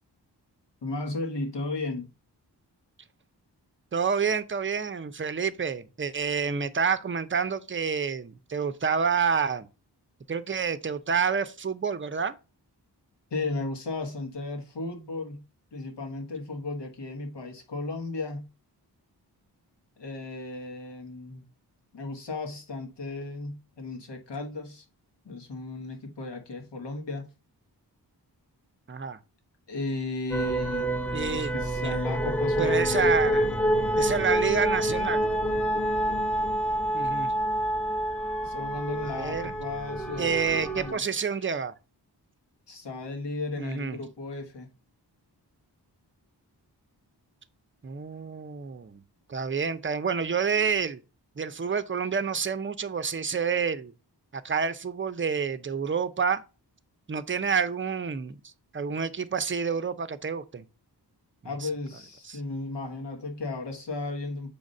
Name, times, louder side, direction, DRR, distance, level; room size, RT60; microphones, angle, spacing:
voice 1, 0.8-2.1 13.3-15.4 15.7-18.5 20.0-21.5 21.9-24.8 25.2-27.3 29.7-30.9 31.3-33.6 38.4-41.0 42.7-44.7 61.4-64.5, left 3 dB, 75° left, 1.4 m, -35 dB
voice 2, 3.9-9.7 10.3-12.3 28.9-29.2 31.1-31.5 32.6-33.5 34.0-35.2 36.9-37.3 39.0-39.5 40.2-41.7 43.6-44.0 47.8-49.0 49.3-51.0 51.4-53.9 54.3-56.4 57.1-60.6 61.6-61.7 62.3-62.4, right 6 dB, 30° right, 0.6 m, -28 dB
sound 1, 30.3-40.9, right 1 dB, 5° left, 0.8 m, -27 dB
7.0 x 2.5 x 5.4 m
cardioid pair, 50°, 42 cm